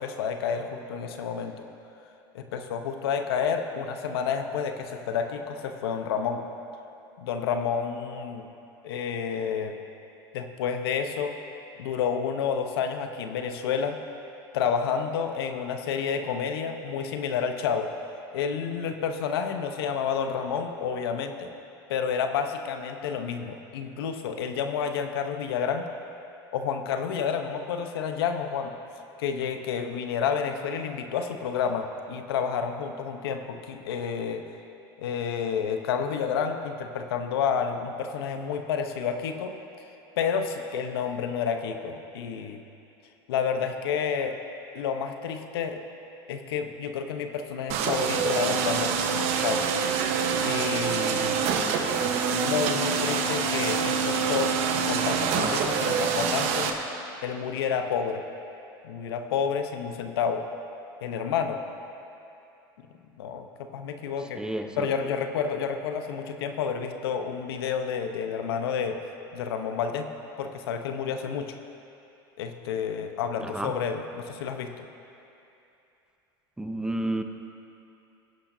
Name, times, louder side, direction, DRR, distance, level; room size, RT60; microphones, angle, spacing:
voice 1, 0.0-1.7 2.3-6.4 7.2-8.5 8.8-9.8 10.3-11.3 11.8-14.0 14.5-17.9 18.3-21.5 21.9-25.9 26.5-28.7 29.2-34.4 35.0-39.5 40.2-42.6 43.3-44.4 44.7-45.8 46.3-49.7 50.4-51.3 52.3-54.5 54.8-56.7 57.2-58.2 58.8-60.4 61.0-61.6 63.2-63.5 63.7-64.4 64.8-69.0 69.3-70.1 70.4-71.5 72.4-74.9, left 7 dB, 85° left, 6 dB, 0.9 m, -30 dB
sound 1, 47.7-56.7, right 6 dB, 60° right, 1.2 m, -26 dB
voice 2, 64.4-64.9 73.4-73.7 76.6-77.2, right 1 dB, 5° right, 6 dB, 0.8 m, -30 dB
21.0 x 10.0 x 2.7 m, 2.8 s
supercardioid pair, 105°, 12 cm